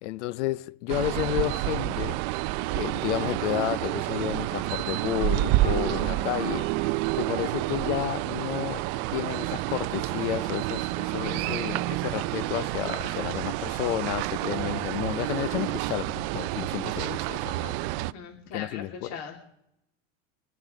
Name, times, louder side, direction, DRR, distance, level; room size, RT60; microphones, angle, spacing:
voice 1, 0.0-2.2 2.8-6.7 7.1-8.9 9.1-17.7 18.5-19.2, left 16 dB, 85° left, 0.7 m, -31 dB
sound 1, 0.9-18.1, right 18 dB, 55° right, 0.4 m, -29 dB
sound 2, 4.3-13.3, left 5 dB, 10° left, 1.0 m, -49 dB
voice 2, 18.0-19.4, left 6 dB, 65° left, 3.2 m, -40 dB
25.0 x 9.4 x 5.1 m
supercardioid pair, 140°, 34 cm